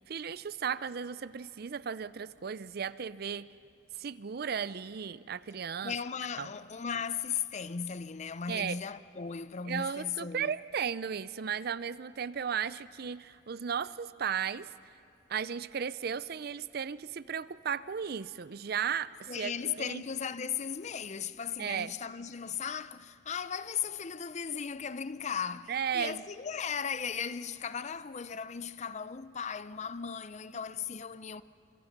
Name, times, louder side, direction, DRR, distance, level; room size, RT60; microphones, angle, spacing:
voice 1, 0.1-3.5 3.9-5.9 6.4-6.5 8.5-8.8 9.6-14.7 15.3-20.0 21.6-21.9 25.7-26.2, right 7 dB, 55° right, 0.5 m, -35 dB
voice 2, 5.8-10.5 19.3-31.4, left 7 dB, 40° left, 0.5 m, -37 dB
30.0 x 25.0 x 6.0 m
head